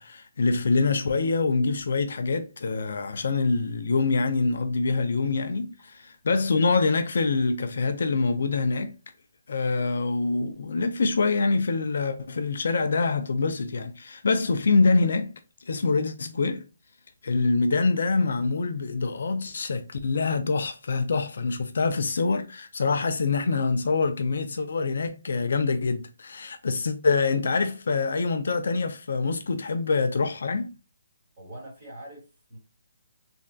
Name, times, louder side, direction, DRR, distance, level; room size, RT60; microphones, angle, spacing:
voice 1, 0.0-8.9 9.5-15.3 15.7-16.6 17.2-30.7, left 4 dB, 50° left, 0.3 m, -25 dB
voice 2, 31.4-32.6, right 1 dB, 20° right, 1.3 m, -43 dB
3.2 x 2.3 x 2.5 m
hypercardioid pair, 180°, 0 cm